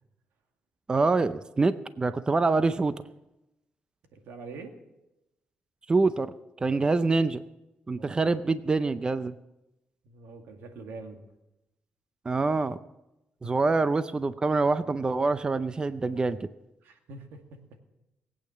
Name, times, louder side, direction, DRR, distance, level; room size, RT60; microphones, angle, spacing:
voice 1, 0.9-2.9 5.9-6.3 6.6-7.4 7.9-9.4 12.2-12.8 13.4-16.5, right 3 dB, 25° right, 13 dB, 0.5 m, -25 dB
voice 2, 4.1-4.7 8.0-8.3 10.0-11.2 13.4-13.5 16.8-17.6, right 3 dB, 90° right, 5 dB, 2.1 m, -45 dB
20.0 x 8.7 x 7.3 m, 0.93 s
cardioid pair, 110°, 4 cm